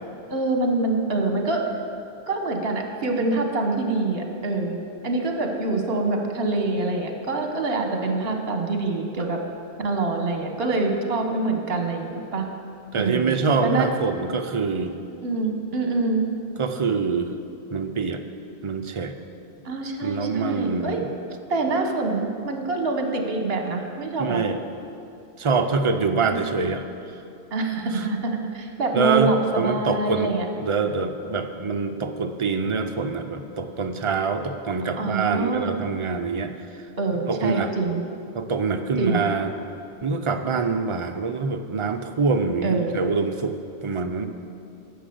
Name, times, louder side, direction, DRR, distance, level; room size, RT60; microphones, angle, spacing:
voice 1, 0.3-1.6 2.3-4.8 5.0-9.4 9.8-12.4 12.9-13.9 15.2-16.2 19.6-21.0 21.5-24.4 26.3-26.5 27.5-30.5 35.0-35.7 37.0-38.0 39.0-39.2 42.6-42.9, right 3 dB, 60° right, 3 dB, 1.3 m, -25 dB
voice 2, 12.9-15.0 16.6-17.3 17.7-18.2 18.6-19.1 20.0-21.1 24.2-24.6 25.4-26.9 27.9-28.1 28.9-30.3 30.6-36.8 37.3-37.7 38.3-39.5 40.0-44.3, right 4 dB, 35° right, 6 dB, 0.5 m, -25 dB
10.0 x 6.3 x 7.8 m, 2.6 s
omnidirectional pair, 1.1 m